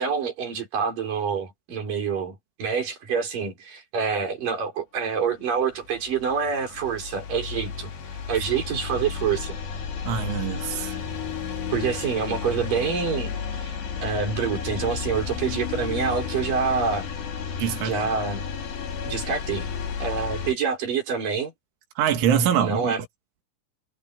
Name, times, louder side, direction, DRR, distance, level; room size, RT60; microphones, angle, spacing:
voice 1, 0.0-7.9 8.3-9.6 11.7-13.7 14.0-17.1 17.8-18.4 19.0-19.7 20.0-21.5 22.6-23.0, right 6 dB, 45° right, 6.0 m, -27 dB
sound 1, 5.6-20.5, left 6 dB, 65° left, 5.3 m, -32 dB
voice 2, 10.1-11.0 17.6-18.0 22.0-23.0, right 8 dB, 90° right, 4.5 m, -24 dB
omnidirectional pair, 5.4 m